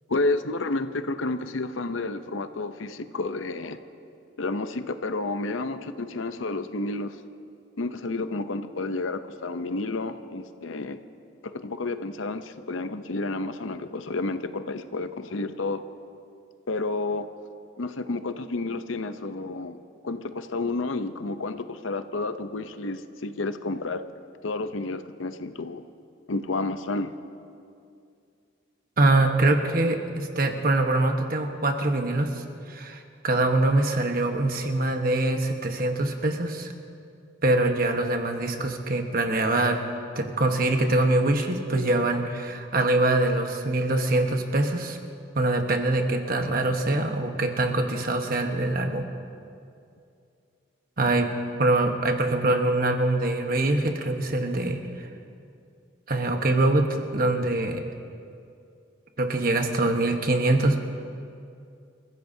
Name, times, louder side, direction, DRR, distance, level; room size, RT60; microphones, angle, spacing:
voice 1, 0.1-3.8 4.4-7.2 7.8-11.0 11.4-15.8 16.7-17.3 17.8-24.1 24.4-25.8 26.3-27.1, left 3 dB, 85° left, 10 dB, 0.7 m, -30 dB
voice 2, 29.0-36.7 37.4-39.8 40.1-45.0 45.3-49.1 51.0-51.3 51.6-55.1 56.1-57.8 59.2-60.8, right 2 dB, 50° right, 4 dB, 1.2 m, -24 dB
29.5 x 15.0 x 2.8 m, 2.5 s
head